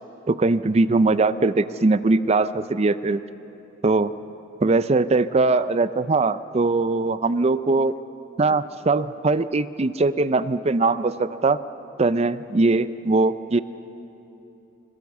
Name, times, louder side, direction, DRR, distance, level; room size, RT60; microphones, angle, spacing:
voice 1, 0.3-3.2 3.8-4.1 4.6-7.9 8.4-11.6 12.0-13.6, right 3 dB, 30° right, 14 dB, 0.5 m, -21 dB
21.5 x 21.0 x 7.2 m, 2.9 s
head